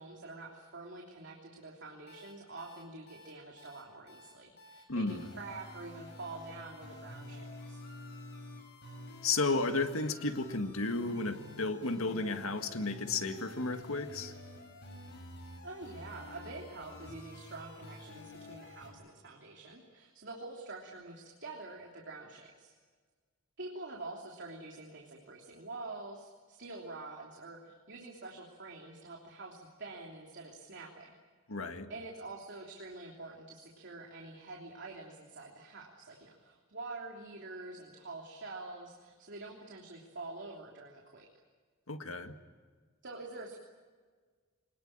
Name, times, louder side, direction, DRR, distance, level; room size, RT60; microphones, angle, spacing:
voice 1, 0.0-7.8 15.6-22.7 23.6-31.1 31.9-41.3 43.0-43.6, right 2 dB, 60° right, 0 dB, 3.2 m, -46 dB
sound 1, 2.1-18.9, left 1 dB, 55° left, 7.4 m, -50 dB
voice 2, 4.9-5.3 9.2-14.3 31.5-31.9 41.9-42.3, left 3 dB, 80° left, 7 dB, 1.9 m, -33 dB
25.5 x 20.0 x 8.9 m, 1.5 s
head